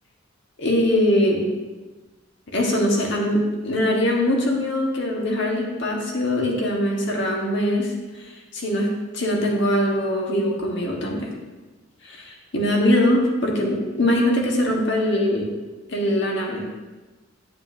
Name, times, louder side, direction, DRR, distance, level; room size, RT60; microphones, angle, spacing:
voice 1, 0.6-1.5 2.5-7.9 8.5-11.3 12.0-15.5 15.9-16.6, left 1 dB, 60° left, -1 dB, 1.6 m, -22 dB
9.5 x 8.5 x 2.8 m, 1.2 s
head